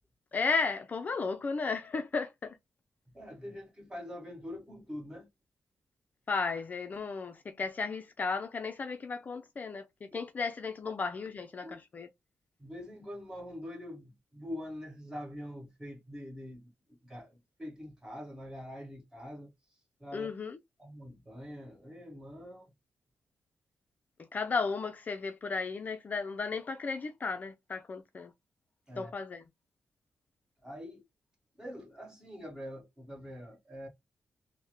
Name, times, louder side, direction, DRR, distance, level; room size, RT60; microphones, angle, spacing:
voice 1, 0.3-2.6 6.3-12.1 20.1-20.6 24.3-28.3 29.0-29.4, left 4 dB, 35° left, 0.4 m, -34 dB
voice 2, 3.1-5.3 10.1-10.2 10.8-10.9 11.6-11.8 12.6-16.7 17.0-20.3 20.8-22.7 28.9-29.1 30.6-31.0 31.6-33.9, equal, 15° right, 1.3 m, -44 dB
3.4 x 2.0 x 2.9 m
wide cardioid pair, 125°, 5 cm